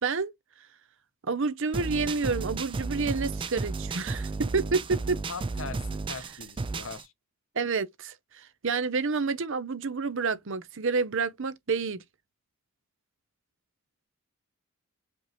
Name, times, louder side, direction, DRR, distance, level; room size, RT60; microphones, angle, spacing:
voice 1, 1.3-5.2 7.6-12.0, right 4 dB, 60° right, 0.7 m, -29 dB
sound 1, 1.7-7.0, right 3 dB, 25° right, 0.3 m, -33 dB
voice 2, 5.3-7.1, left 5 dB, 65° left, 0.9 m, -40 dB
5.2 x 3.1 x 3.0 m
head